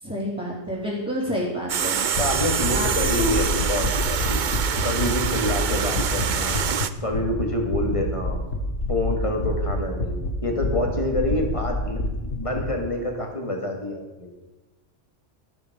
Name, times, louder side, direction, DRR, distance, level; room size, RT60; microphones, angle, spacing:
voice 1, 0.0-2.2 2.7-3.4, equal, 10° right, -8 dB, 3.8 m, -29 dB
sound 1, 1.7-6.9, right 7 dB, 45° right, 0.7 m, -26 dB
sound 2, 2.1-6.8 7.1-7.4 7.7-10.3 10.6-12.6, left 2 dB, 90° left, 2.3 m, -27 dB
voice 2, 2.2-4.4 4.8-6.6 7.0-8.4 8.9-14.3, left 1 dB, 25° left, 2 dB, 2.5 m, -27 dB
12.5 x 12.5 x 5.3 m, 1.1 s
omnidirectional pair, 1.3 m